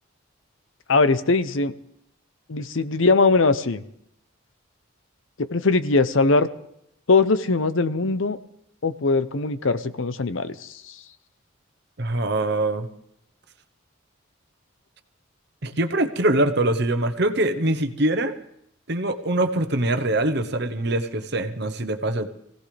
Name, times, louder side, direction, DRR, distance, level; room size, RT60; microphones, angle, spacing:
voice 1, 0.9-1.7 2.5-3.8 5.4-6.5 7.1-8.4 8.8-11.0, left 3 dB, 70° left, 13 dB, 0.8 m, -21 dB
voice 2, 12.0-12.9 15.6-18.3 18.9-22.3, right 1 dB, 55° right, 9 dB, 1.0 m, -23 dB
23.5 x 16.5 x 3.4 m, 0.74 s
head